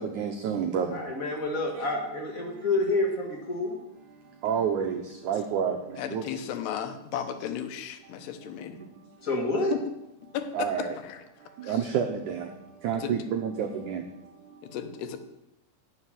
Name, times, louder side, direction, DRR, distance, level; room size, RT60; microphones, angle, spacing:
voice 1, 0.0-1.5 1.7-1.9 2.5-2.7 3.6-6.2 8.1-8.3 8.8-9.2 10.5-11.0 11.4-14.8, right 7 dB, 80° right, 4 dB, 1.8 m, -31 dB
voice 2, 0.9-3.7 9.2-9.8, left 2 dB, 35° left, 1 dB, 1.5 m, -28 dB
voice 3, 6.0-8.8 9.7-9.8 10.3-11.2 11.6-11.8 12.9-13.1 14.6-15.2, left 9 dB, 85° left, 8 dB, 3.1 m, -35 dB
11.0 x 6.7 x 9.1 m, 0.87 s
omnidirectional pair, 4.6 m